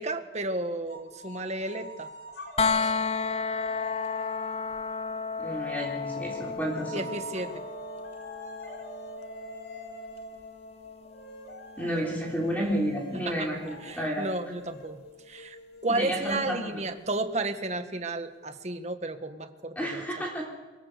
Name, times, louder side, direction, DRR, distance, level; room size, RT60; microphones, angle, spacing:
voice 1, 0.0-2.1 2.7-2.9 6.9-7.6 13.3-13.5 13.8-15.0 15.3-20.0, right 2 dB, 40° right, 7 dB, 1.6 m, -32 dB
sound 1, 0.9-4.8 5.8-17.1, right 1 dB, 80° left, 5.1 m, -45 dB
sound 2, 2.6-14.4 16.3-16.4, left 5 dB, 35° left, 0.7 m, -34 dB
voice 2, 5.4-7.1 11.8-14.3 15.9-16.8 19.8-20.5, equal, 10° left, -3 dB, 3.8 m, -31 dB
23.5 x 22.5 x 6.8 m, 1.3 s
head